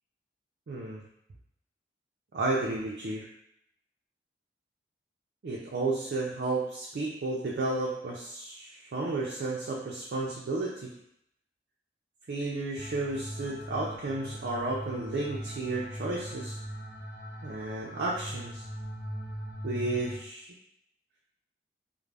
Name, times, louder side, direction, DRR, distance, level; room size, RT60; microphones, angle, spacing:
voice 1, 0.7-1.0 2.3-3.3 5.4-10.9 12.3-16.6 17.4-18.6 19.6-20.5, right 2 dB, 60° right, -3 dB, 0.4 m, -32 dB
sound 1, 12.8-20.2, equal, 45° left, 0.7 m, -40 dB
2.5 x 2.0 x 3.2 m, 0.74 s
head